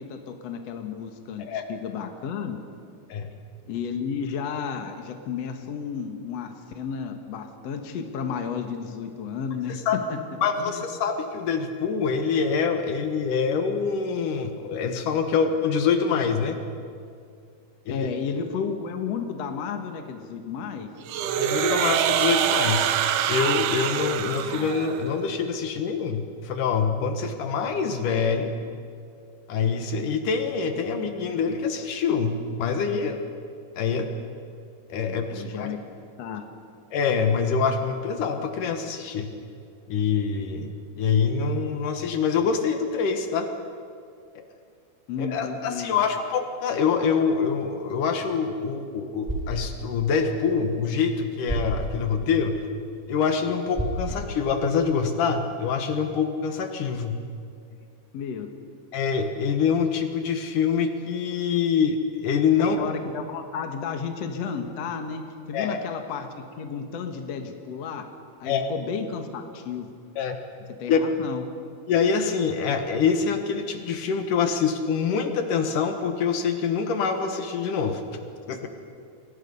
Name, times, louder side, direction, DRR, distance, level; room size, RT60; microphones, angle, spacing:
voice 1, 0.0-2.6 3.7-10.2 10.6-10.8 17.9-20.9 35.0-35.8 36.2-36.5 45.1-46.0 58.1-58.5 62.6-65.2 65.5-68.0 68.4-69.9 70.8-71.4, left 6 dB, 55° left, 5 dB, 2.5 m, -32 dB
voice 2, 9.7-10.0 10.4-16.6 17.9-18.1 21.2-22.9 23.3-28.6 29.5-33.2 33.8-34.1 34.9-35.7 36.9-39.3 39.9-43.5 45.2-52.6 53.1-57.2 58.9-62.8 65.5-65.8 68.4-68.7 70.2-70.4 70.9-71.0 71.9-78.2 78.5-78.7, left 6 dB, 75° left, 6 dB, 3.0 m, -25 dB
sound 1, 21.1-25.1, right 9 dB, 75° right, 2.4 m, -25 dB
sound 2, 49.1-55.1, right 1 dB, 5° right, 5.3 m, -35 dB
29.5 x 23.0 x 5.5 m, 2.4 s
omnidirectional pair, 3.7 m